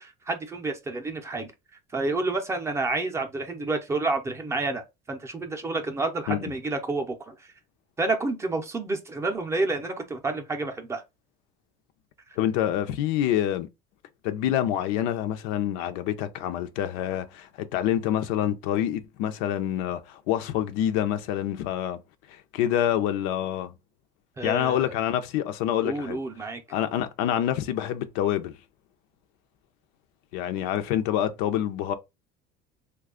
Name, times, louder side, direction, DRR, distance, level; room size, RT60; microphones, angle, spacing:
voice 1, 0.0-1.5 1.9-7.5 8.0-11.0 24.4-24.9 25.8-26.6, right 3 dB, 15° right, 0.5 m, -29 dB
voice 2, 12.4-13.7 14.2-22.0 22.3-23.7 24.4-26.2 26.7-28.5 30.3-31.9, left 11 dB, 85° left, 0.6 m, -27 dB
3.2 x 2.3 x 3.6 m
cardioid pair, 155°, 19 cm